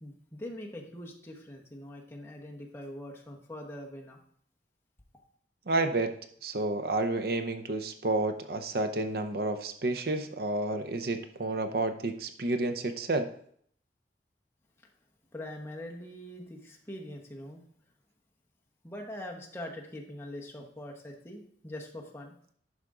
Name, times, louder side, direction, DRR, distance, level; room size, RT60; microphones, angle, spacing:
voice 1, 0.0-4.2 15.3-17.6 18.8-22.3, left 1 dB, 15° left, 0 dB, 1.1 m, -43 dB
voice 2, 5.7-6.1 6.4-13.3, right 2 dB, 55° right, 7 dB, 0.6 m, -30 dB
11.0 x 5.1 x 3.7 m, 0.62 s
head